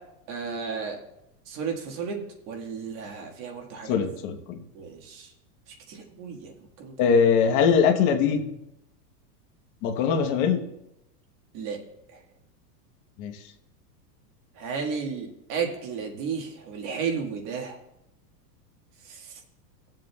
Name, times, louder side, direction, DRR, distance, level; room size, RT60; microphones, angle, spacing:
voice 1, 0.3-1.0 1.5-3.9 4.7-5.3 5.9-6.5 6.8-6.9 11.5-11.8 14.6-17.8, right 6 dB, 45° right, 1 dB, 1.7 m, -33 dB
voice 2, 3.8-4.6 7.0-8.4 9.8-10.6 13.2-13.4, left 6 dB, 40° left, 4 dB, 1.1 m, -22 dB
18.5 x 7.6 x 2.3 m, 0.84 s
supercardioid pair, 160°, 48 cm